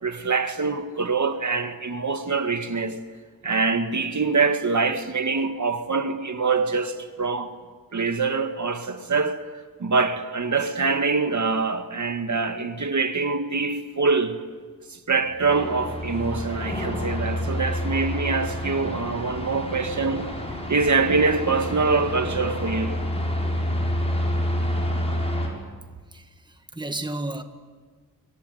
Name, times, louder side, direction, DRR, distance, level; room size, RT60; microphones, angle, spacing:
voice 1, 0.0-3.0 3.4-7.5 7.9-9.4 9.8-14.5 14.9-20.3 20.7-23.0, right 4 dB, 55° right, 1.9 m, -24 dB
sound 1, 15.3-25.5, left 1 dB, 15° left, 6.8 m, -28 dB
voice 2, 26.1-27.4, right 2 dB, 10° right, 1.6 m, -33 dB
26.5 x 23.0 x 9.4 m
wide cardioid pair, 95°, 35 cm